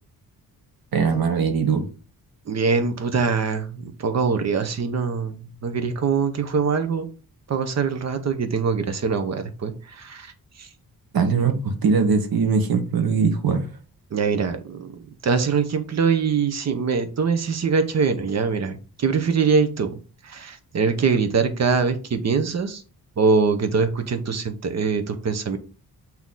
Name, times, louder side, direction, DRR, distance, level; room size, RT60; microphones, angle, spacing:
voice 1, 0.9-1.9 11.1-13.6, right 5 dB, 70° right, 6 dB, 1.2 m, -21 dB
voice 2, 2.5-7.1 7.5-10.7 14.1-19.9 20.2-22.8 23.2-25.6, right 5 dB, 45° right, 8 dB, 0.9 m, -23 dB
8.3 x 3.0 x 3.8 m, 0.35 s
wide cardioid pair, 165°, 37 cm